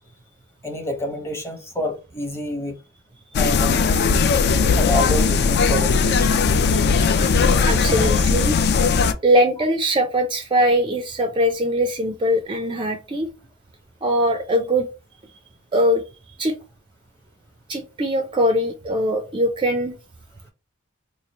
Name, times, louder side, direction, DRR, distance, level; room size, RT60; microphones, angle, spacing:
voice 1, 0.6-2.7 3.3-3.9 4.8-6.3, equal, 10° left, 0.7 m, -28 dB
sound 1, 3.3-9.1, left 5 dB, 55° left, 0.4 m, -18 dB
voice 2, 7.6-8.6 9.2-13.3 14.0-14.9 15.7-16.0 16.4-16.6 17.7-19.9, equal, 25° right, 0.4 m, -21 dB
3.0 x 2.4 x 4.1 m
head